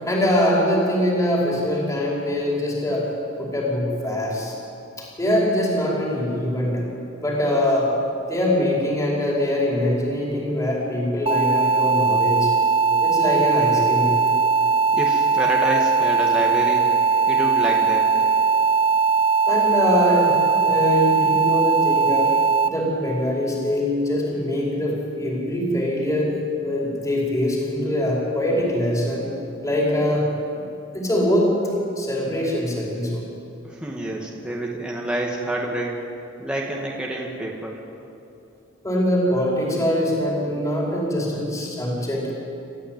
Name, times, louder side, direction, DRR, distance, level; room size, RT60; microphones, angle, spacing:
voice 1, 0.0-3.1 3.4-4.5 5.0-6.8 7.2-7.9 8.3-12.5 13.0-14.1 19.5-22.3 22.7-26.4 26.6-29.3 29.6-30.6 30.9-31.5 32.0-33.3 38.8-42.3, left 1 dB, 15° left, -3 dB, 5.1 m, -23 dB
sound 1, 11.3-22.7, right 5 dB, 30° right, 0.9 m, -19 dB
voice 2, 15.0-16.9 17.3-18.1 33.6-37.7, right 1 dB, 5° right, -3 dB, 2.3 m, -28 dB
30.0 x 14.5 x 9.4 m, 2.8 s
head